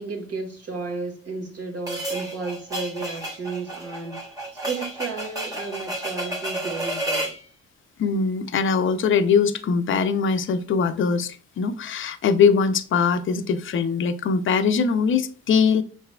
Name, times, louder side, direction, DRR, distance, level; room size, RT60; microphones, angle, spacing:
voice 1, 0.0-4.2 4.6-7.3, right 4 dB, 55° right, 1.9 m, -33 dB
sound 1, 1.9-7.4, right 1 dB, 10° right, 1.5 m, -31 dB
voice 2, 8.0-15.8, left 5 dB, 45° left, 0.5 m, -21 dB
5.7 x 4.0 x 2.2 m
cardioid pair, 90°, 30 cm